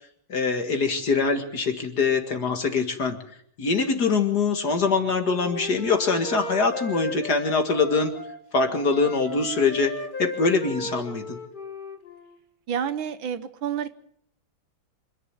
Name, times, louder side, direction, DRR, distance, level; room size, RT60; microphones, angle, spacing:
voice 1, 0.3-3.2 3.6-8.1 8.5-9.9 10.2-11.4, left 4 dB, 50° left, 5 dB, 2.4 m, -23 dB
Wind instrument woodwind instrument, 4.8-8.4 8.7-12.4, left 2 dB, 30° left, 1.3 m, -36 dB
voice 2, 12.7-13.9, right 8 dB, 70° right, 13 dB, 1.8 m, -29 dB
26.5 x 11.0 x 9.0 m, 0.68 s
omnidirectional pair, 2.3 m